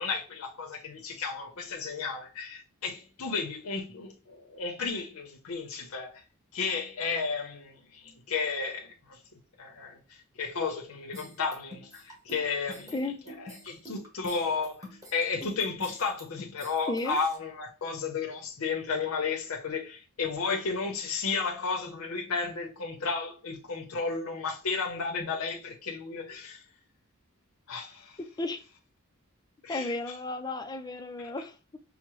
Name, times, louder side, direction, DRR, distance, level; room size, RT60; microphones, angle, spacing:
voice 1, 0.0-6.2 6.5-9.2 9.6-13.0 13.3-26.6 27.7-28.2 29.6-29.9, left 4 dB, 75° left, 0.8 m, -33 dB
sound 1, 11.1-17.4, left 1 dB, 15° right, 1.0 m, -47 dB
voice 2, 16.9-17.2 28.4-28.6 29.7-31.8, left 2 dB, 20° left, 0.4 m, -33 dB
5.9 x 2.1 x 3.0 m
head